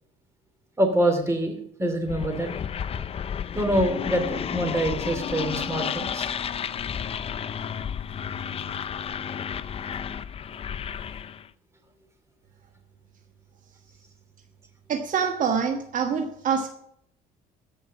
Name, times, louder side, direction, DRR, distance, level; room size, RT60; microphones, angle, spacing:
voice 1, 0.8-2.5 3.5-6.3, right 1 dB, 15° right, 6 dB, 2.7 m, -25 dB
sound 1, 2.1-11.5, left 8 dB, 35° left, 0.5 m, -32 dB
voice 2, 14.9-16.7, right 6 dB, 50° right, 4 dB, 1.4 m, -25 dB
14.5 x 5.5 x 7.9 m, 0.70 s
cardioid pair, 110°, 17 cm